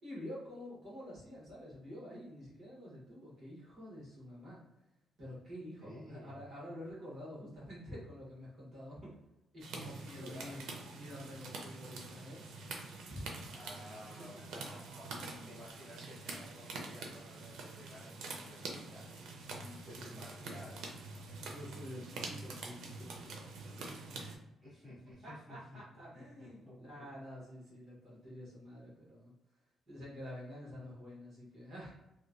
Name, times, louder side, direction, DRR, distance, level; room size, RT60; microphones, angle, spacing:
voice 1, 0.0-4.6 5.2-9.2 9.5-10.7 11.0-12.4 13.1-13.3 14.2-14.6 15.2-15.6 19.5-20.2 21.4-24.4 25.2-29.3 29.9-31.9, left 1 dB, 40° right, -7 dB, 1.3 m, -48 dB
voice 2, 5.8-6.4 10.1-10.7 13.5-15.2 15.4-19.4 19.8-20.9 24.6-25.8 26.1-27.1, equal, 5° right, -11 dB, 1.2 m, -53 dB
sound 1, 9.6-24.4, right 3 dB, 90° right, 0.5 m, -46 dB
2.9 x 2.2 x 2.5 m, 0.93 s
cardioid pair, 165°, 0 cm